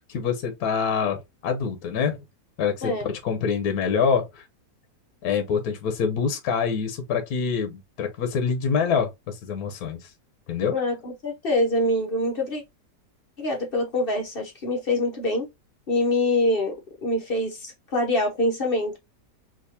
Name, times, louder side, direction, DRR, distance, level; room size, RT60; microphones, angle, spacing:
voice 1, 0.1-1.2 1.4-2.2 2.6-4.4 5.2-10.1 10.5-10.7, left 6 dB, 65° left, 1.2 m, -25 dB
voice 2, 10.7-12.6 13.4-15.5 15.9-16.8 17.0-19.0, left 1 dB, 45° left, 0.7 m, -25 dB
3.5 x 2.8 x 2.7 m
omnidirectional pair, 1.9 m